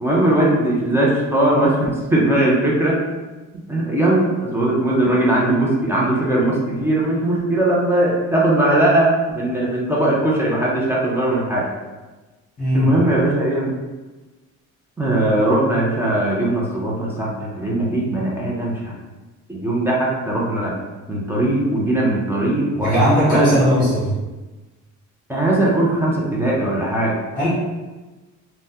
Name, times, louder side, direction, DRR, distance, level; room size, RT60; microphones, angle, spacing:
voice 1, 0.0-3.0 3.5-11.7 12.7-13.7 15.0-18.9 19.5-20.7 21.1-24.0 25.3-27.2, right 1 dB, 10° right, -5 dB, 0.4 m, -19 dB
voice 2, 12.6-12.9 22.8-24.1 27.3-27.5, equal, 25° left, -9 dB, 1.3 m, -18 dB
3.4 x 2.1 x 2.6 m, 1.2 s
cardioid pair, 170°, 31 cm